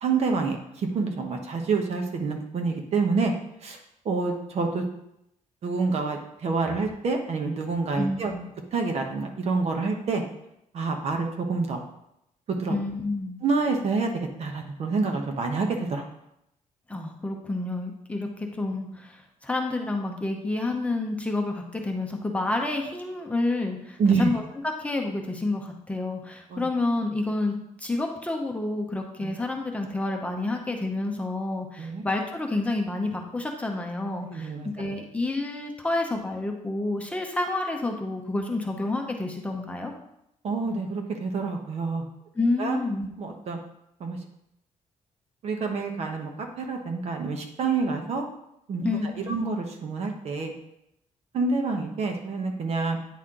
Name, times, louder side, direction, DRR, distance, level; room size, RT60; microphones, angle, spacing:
voice 1, 0.0-3.3 3.6-3.8 4.0-4.8 5.6-8.3 8.7-10.2 10.7-11.8 12.5-12.8 13.4-16.0 24.0-24.3 26.5-26.7 29.2-29.3 31.8-32.0 34.3-34.9 40.4-42.0 42.6-42.8 43.2-43.6 44.0-44.2 45.4-48.2 48.7-48.9 49.3-50.5 51.3-53.0, right 4 dB, 55° right, 3 dB, 1.1 m, -27 dB
voice 2, 8.0-8.4 12.7-13.4 16.9-24.4 24.8-39.9 42.3-43.1 48.8-49.4, left 2 dB, 10° left, 1 dB, 0.8 m, -29 dB
9.2 x 4.3 x 3.7 m, 0.79 s
cardioid pair, 145°, 13 cm